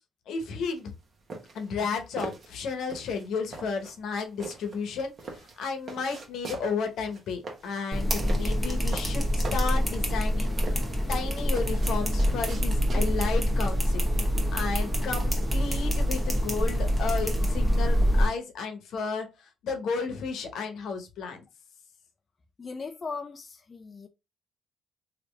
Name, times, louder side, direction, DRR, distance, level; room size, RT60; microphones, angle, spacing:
voice 1, 0.3-0.9 1.5-10.8 11.1-14.0 14.5-21.4, left 5 dB, 75° left, 0.9 m, -33 dB
sound 1, 0.7-13.4, right 3 dB, 45° right, 1.1 m, -42 dB
sound 2, 7.9-18.3, equal, 15° right, 1.2 m, -25 dB
voice 2, 22.6-24.1, left 4 dB, 35° left, 0.4 m, -38 dB
3.1 x 2.8 x 3.3 m
cardioid pair, 90°, 0 cm